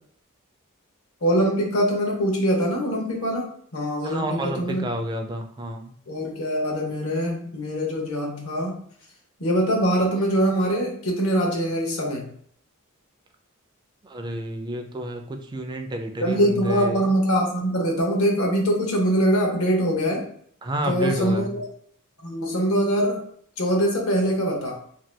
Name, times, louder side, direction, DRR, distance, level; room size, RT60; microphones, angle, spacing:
voice 1, 1.2-4.9 6.1-8.8 9.4-12.3 16.2-20.3 20.9-21.6 22.2-23.3 23.6-24.8, equal, 70° left, 0 dB, 0.8 m, -23 dB
voice 2, 4.0-6.0 14.0-17.0 20.6-21.6, right 1 dB, 20° right, 4 dB, 0.3 m, -30 dB
2.7 x 2.2 x 3.3 m, 0.63 s
head